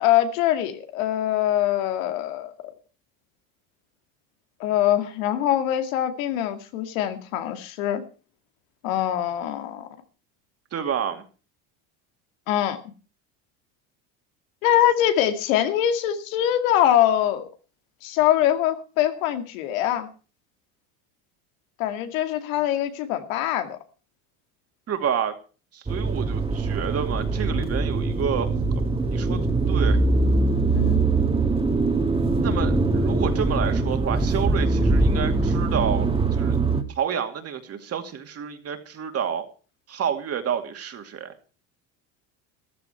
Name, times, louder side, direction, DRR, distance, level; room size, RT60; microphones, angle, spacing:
voice 1, 0.0-2.7 4.6-8.0 8.8-9.9 12.5-12.8 14.6-17.5 18.0-20.1 21.8-23.8 30.7-31.0, left 11 dB, 85° left, 8 dB, 2.2 m, -23 dB
voice 2, 10.7-11.2 24.9-25.3 25.7-28.5 29.1-30.0 32.4-36.6 37.0-39.5 39.9-41.3, right 8 dB, 35° right, 6 dB, 2.5 m, -29 dB
sound 1, 25.9-36.8, right 3 dB, 15° right, 1.8 m, -22 dB
14.0 x 12.5 x 4.5 m, 0.36 s
supercardioid pair, 120°, 39 cm